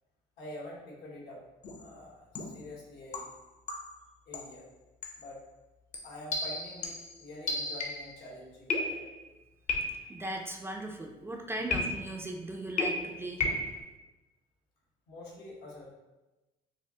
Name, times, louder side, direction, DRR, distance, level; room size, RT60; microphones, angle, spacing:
voice 1, 0.4-1.4 1.8-3.3 4.3-4.7 5.2-5.4 6.0-9.0 15.1-15.9, left 1 dB, 80° left, -3 dB, 1.2 m, -46 dB
sound 1, 1.6-1.9 2.3-2.7 3.1-4.0 4.3-4.6 5.0-5.3 5.9-8.2 8.7-9.3 9.7-10.2 11.7-12.3 12.8-13.8, left 2 dB, 45° left, 0.7 m, -34 dB
voice 2, 10.1-13.5, right 1 dB, 15° right, 2 dB, 0.4 m, -38 dB
5.3 x 2.0 x 2.8 m, 1.1 s
cardioid pair, 110°, 17 cm